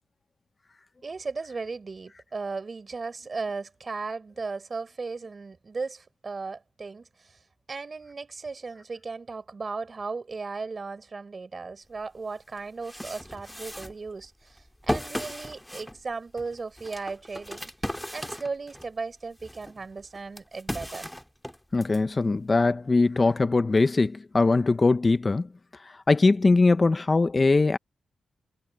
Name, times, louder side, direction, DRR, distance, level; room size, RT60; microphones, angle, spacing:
voice 1, 1.0-7.4 7.7-17.7 18.1-21.1, right 4 dB, 40° right, 4.4 m, -36 dB
sound 1, 12.0-12.1 12.6-18.9 19.4-22.0, equal, 5° left, 2.6 m, -36 dB
voice 2, 21.7-25.5 25.8-27.8, left 3 dB, 35° left, 1.0 m, -21 dB
cardioid pair, 65°, 0 cm